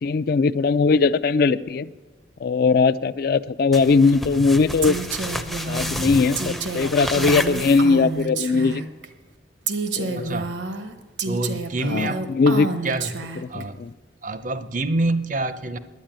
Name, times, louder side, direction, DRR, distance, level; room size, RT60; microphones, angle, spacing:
voice 1, 0.0-1.9 2.4-5.0 5.7-8.8 10.0-10.3 11.8-12.7 13.4-13.9, left 4 dB, 55° left, 13 dB, 0.4 m, -20 dB
sound 1, 3.7-8.2, equal, ahead, 0.5 m, -30 dB
Female speech woman speaking, 4.8-9.1 9.7-13.6, right 4 dB, 75° right, 1.0 m, -29 dB
voice 2, 10.1-10.5 11.2-12.2 12.8-13.1 13.5-13.8 14.2-15.8, right 2 dB, 45° right, 12 dB, 0.6 m, -26 dB
10.5 x 9.6 x 8.8 m, 1.2 s
head